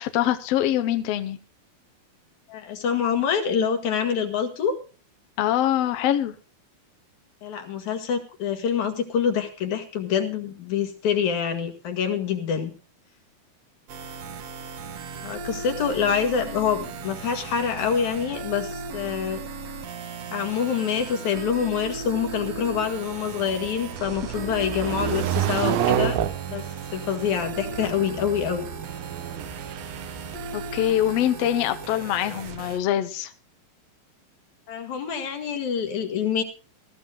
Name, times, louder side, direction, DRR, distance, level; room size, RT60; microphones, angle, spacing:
voice 1, 0.0-1.4 5.4-6.3 30.5-33.3, left 12 dB, 80° left, 1.4 m, -24 dB
voice 2, 2.5-4.7 7.4-12.7 15.2-19.4 20.3-26.2 26.5-26.7 26.9-28.7 34.7-36.4, left 7 dB, 60° left, 3.1 m, -26 dB
sound 1, 13.9-32.8, right 4 dB, 55° right, 2.2 m, -37 dB
sound 2, 21.9-31.2, right 11 dB, 85° right, 2.9 m, -30 dB
20.5 x 14.0 x 2.3 m
omnidirectional pair, 4.2 m